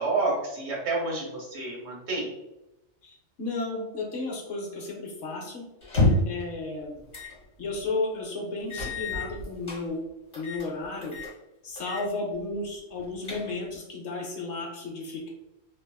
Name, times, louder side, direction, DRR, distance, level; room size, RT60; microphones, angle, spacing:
voice 1, 0.0-2.3, right 3 dB, 60° right, -3 dB, 1.1 m, -29 dB
voice 2, 3.0-5.6 6.3-6.9 7.6-10.0 10.3-11.2 11.6-15.3, left 3 dB, 65° left, 0 dB, 0.9 m, -33 dB
sound 1, 5.8-6.4 7.1-7.4 7.7-7.8 8.7-9.8 10.3-10.7 11.0-11.3 11.8-12.1 12.4-12.5 13.0-13.8, left 2 dB, 50° left, 1.4 m, -28 dB
2.7 x 2.4 x 2.2 m, 0.93 s
omnidirectional pair, 1.3 m